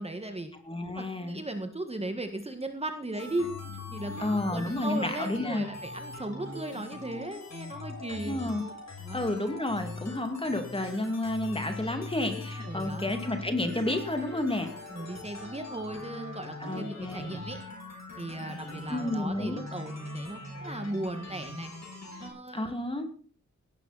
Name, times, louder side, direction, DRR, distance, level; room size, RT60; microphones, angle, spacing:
voice 1, 0.0-0.5 0.9-3.5 3.9-8.4 9.0-9.3 12.7-13.1 14.9-17.6 18.2-21.7 22.2-22.8, right 1 dB, 20° right, 6 dB, 1.8 m, -37 dB
voice 2, 0.6-1.4 4.2-5.6 8.1-8.6 9.1-14.7 16.6-17.4 18.9-19.6 22.5-23.1, left 2 dB, 20° left, 6 dB, 2.4 m, -31 dB
sound 1, 3.1-22.3, left 2 dB, 65° left, 6.5 m, -41 dB
sound 2, 4.0-4.3 6.4-6.7 7.5-7.6 8.4-8.7 10.7-11.0 12.1-12.2 13.6-14.0 14.9-15.0 15.3-15.4 16.6-16.9 18.6-19.0, right 4 dB, 50° right, 4.7 m, -47 dB
17.5 x 13.0 x 4.2 m, 0.41 s
wide cardioid pair, 130°, 29 cm